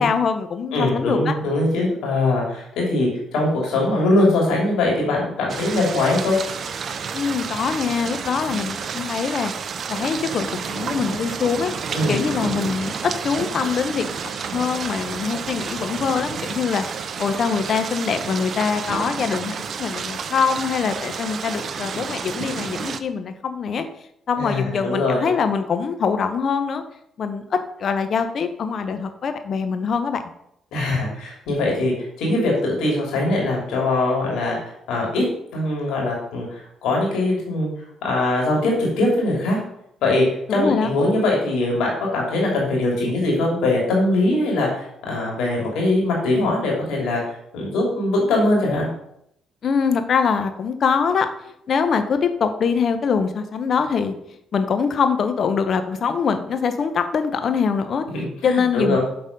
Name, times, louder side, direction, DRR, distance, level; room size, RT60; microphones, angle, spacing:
voice 1, 0.0-1.3 7.1-9.5 9.9-11.7 12.1-14.2 14.5-23.8 24.3-26.8 27.2-30.2 40.5-40.9 49.6-51.3 51.7-54.1 54.5-58.0 58.4-59.0, left 6 dB, 60° left, 9 dB, 0.9 m, -23 dB
voice 2, 0.7-6.4 11.9-12.2 24.4-25.3 30.7-31.9 32.2-34.6 34.9-35.2 35.5-37.7 38.0-39.6 40.0-40.2 40.5-47.2 47.5-48.9 58.1-59.0, left 2 dB, 80° left, -2 dB, 2.9 m, -21 dB
sound 1, 5.5-23.0, right 6 dB, 60° right, 0.6 m, -30 dB
7.6 x 4.1 x 5.3 m, 0.75 s
supercardioid pair, 60°, 0 cm